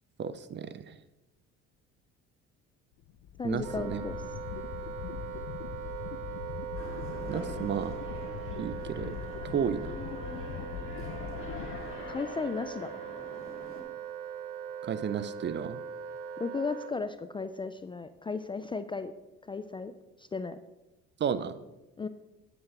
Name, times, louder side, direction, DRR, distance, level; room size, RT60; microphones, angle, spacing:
voice 1, 0.2-1.0 3.4-4.0 7.3-8.0 8.6-9.1 9.5-10.0 14.8-15.8 21.2-21.5, right 8 dB, 35° right, 14 dB, 0.6 m, -32 dB
sound 1, 3.0-12.5, left 9 dB, 65° left, 0.6 m, -41 dB
voice 2, 3.4-4.2 12.1-13.0 16.4-19.1 19.5-19.9 20.2-20.6 22.0-22.1, left 4 dB, 15° left, 11 dB, 0.3 m, -35 dB
Wind instrument woodwind instrument, 3.6-17.0, right 9 dB, 75° right, 0.7 m, -41 dB
sound 2, 6.8-13.8, left 3 dB, 40° left, 2.6 m, -45 dB
8.8 x 8.1 x 3.3 m, 0.99 s
supercardioid pair, 80°, 31 cm